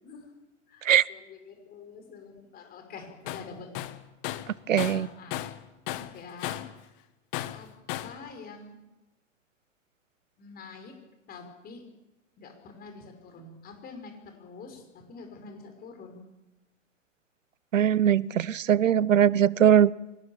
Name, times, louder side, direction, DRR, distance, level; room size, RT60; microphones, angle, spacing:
voice 1, 0.7-3.7 4.8-5.5 6.0-6.6 7.5-7.7 8.0-8.8 10.4-10.9 11.3-11.9 12.4-16.2, left 4 dB, 25° left, 5.7 m, -46 dB
Tools, 3.3-3.5 3.7-5.6 5.9-6.8 7.3-8.2, left 14 dB, 40° left, 1.7 m, -35 dB
voice 2, 4.7-5.1 17.7-19.9, right 9 dB, 85° right, 0.9 m, -21 dB
25.0 x 19.5 x 7.4 m
hypercardioid pair, 125°, 38 cm